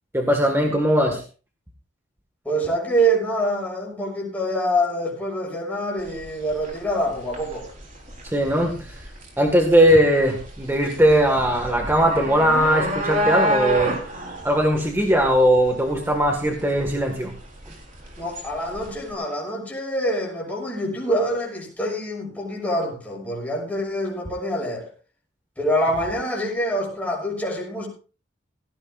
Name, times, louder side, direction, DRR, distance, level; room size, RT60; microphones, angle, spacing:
voice 1, 0.1-1.2 8.3-8.7 9.4-13.9 14.4-17.3, equal, 10° right, 1.8 m, -19 dB
voice 2, 2.4-7.7 8.8-8.9 18.2-24.8 25.6-27.9, right 1 dB, 10° left, 6.4 m, -25 dB
sound 1, 6.0-19.1, equal, 45° right, 4.0 m, -30 dB
17.5 x 16.0 x 2.6 m
head